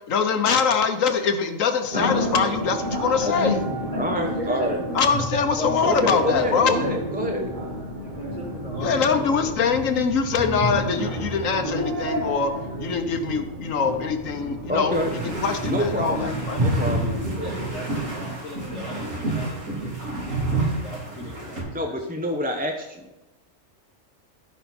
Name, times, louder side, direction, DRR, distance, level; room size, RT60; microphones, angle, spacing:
voice 1, 0.1-3.6 4.9-6.8 8.8-12.5 12.8-16.6, left 6 dB, 85° left, 7 dB, 1.4 m, -23 dB
sound 1, 1.9-17.8, equal, 35° right, 1.7 m, -30 dB
sound 2, 2.3-11.6 12.2-12.3, right 6 dB, 55° right, 1.1 m, -43 dB
voice 2, 3.3-3.6 4.0-4.8 5.8-7.5 14.7-15.1 15.7-17.2 21.7-23.1, equal, 10° right, 2 dB, 0.7 m, -27 dB
voice 3, 3.9-4.9 5.6-7.1 8.1-9.2 16.9-17.0 17.4-22.1, equal, 65° left, -7 dB, 2.8 m, -38 dB
sound 3, 14.9-21.6, right 2 dB, 85° right, 3.7 m, -30 dB
14.5 x 5.6 x 4.3 m, 1.0 s
omnidirectional pair, 1.3 m